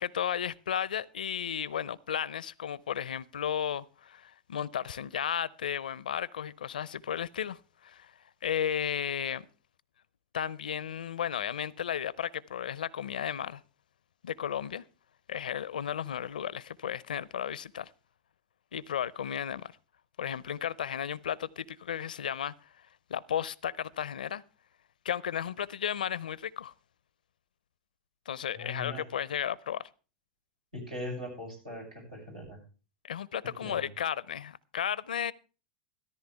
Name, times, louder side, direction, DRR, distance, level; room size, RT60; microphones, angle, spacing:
voice 1, 0.0-8.1 8.4-9.5 10.3-13.6 14.2-14.8 15.3-17.9 18.7-19.7 20.2-22.5 23.1-24.4 25.0-26.7 28.3-29.9 33.0-35.3, left 9 dB, 80° left, 0.5 m, -34 dB
voice 2, 28.5-29.0 30.7-32.6 33.6-33.9, left 1 dB, 90° right, 6.9 m, -40 dB
14.0 x 13.5 x 3.4 m
hypercardioid pair, 90°, 5 cm